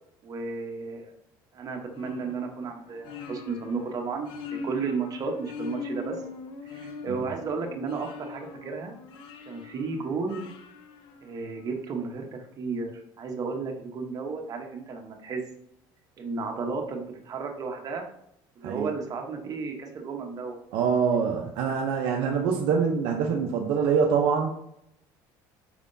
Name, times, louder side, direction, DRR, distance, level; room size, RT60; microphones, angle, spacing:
voice 1, 0.2-1.1 1.5-6.2 6.6-9.0 9.5-10.5 11.2-15.4 16.2-18.1 18.6-20.6 21.6-21.7, right 4 dB, 40° right, 2 dB, 0.8 m, -33 dB
sound 1, 2.0-11.8, left 4 dB, 60° left, 0.5 m, -41 dB
voice 2, 20.7-24.5, right 6 dB, 70° right, 2 dB, 0.5 m, -25 dB
4.9 x 3.5 x 2.6 m, 0.76 s
supercardioid pair, 100°, 9 cm